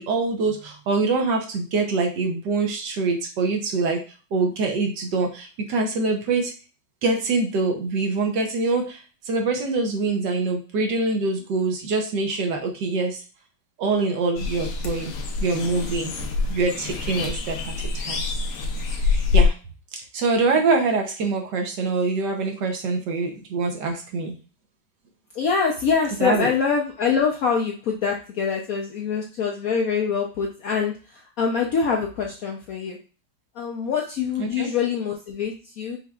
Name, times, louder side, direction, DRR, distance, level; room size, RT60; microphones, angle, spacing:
voice 1, 0.0-4.0 4.3-6.5 7.0-13.2 13.8-15.1 15.4-16.1 16.5-18.2 19.0-19.5 20.1-24.3 26.2-26.5 34.4-34.7, right 3 dB, 65° right, 3 dB, 1.4 m, -24 dB
sound 1, 14.4-19.5, left 4 dB, 85° left, 1.6 m, -25 dB
voice 2, 25.3-33.0 33.5-36.0, left 6 dB, 65° left, 0 dB, 0.9 m, -24 dB
5.7 x 3.3 x 2.3 m, 0.35 s
omnidirectional pair, 2.1 m